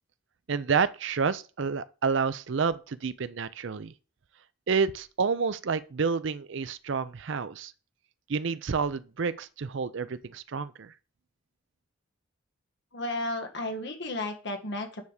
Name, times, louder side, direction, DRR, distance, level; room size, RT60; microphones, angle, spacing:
voice 1, 0.5-3.9 4.7-7.7 8.3-10.9, right 5 dB, 55° right, 0.5 m, -29 dB
voice 2, 12.9-15.0, left 2 dB, 55° left, 1.6 m, -33 dB
9.5 x 3.5 x 6.4 m
head